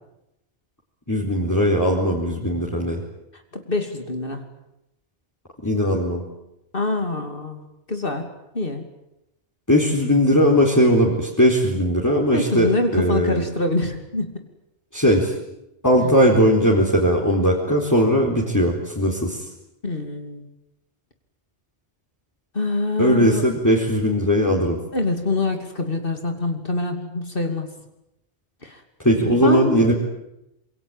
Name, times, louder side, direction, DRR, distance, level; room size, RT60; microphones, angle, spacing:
voice 1, 1.1-3.0 5.6-6.2 9.7-13.4 14.9-15.3 15.8-19.4 23.0-24.8 29.0-29.9, equal, 15° left, -2 dB, 4.2 m, -19 dB
voice 2, 3.5-4.4 6.7-7.6 7.9-8.9 12.3-14.3 16.0-16.1 19.8-20.4 22.5-23.4 24.9-27.7 28.6-28.8 29.3-29.8, left 2 dB, 55° left, 5 dB, 3.0 m, -25 dB
26.5 x 23.5 x 9.2 m, 0.88 s
omnidirectional pair, 1.1 m